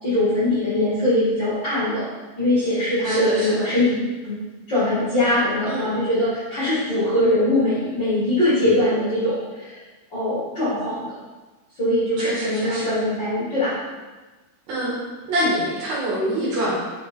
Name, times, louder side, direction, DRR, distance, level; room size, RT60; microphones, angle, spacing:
voice 1, 0.0-2.1 2.4-4.0 4.2-4.4 4.7-9.8 10.1-11.1 11.7-13.8 15.3-15.5, left 1 dB, 35° left, -12 dB, 1.9 m, -22 dB
voice 2, 3.0-3.7 5.7-5.9 12.2-12.9 14.7-14.9 15.3-16.7, right 1 dB, 65° right, -6 dB, 3.4 m, -25 dB
6.2 x 5.0 x 4.4 m, 1.2 s
omnidirectional pair, 4.9 m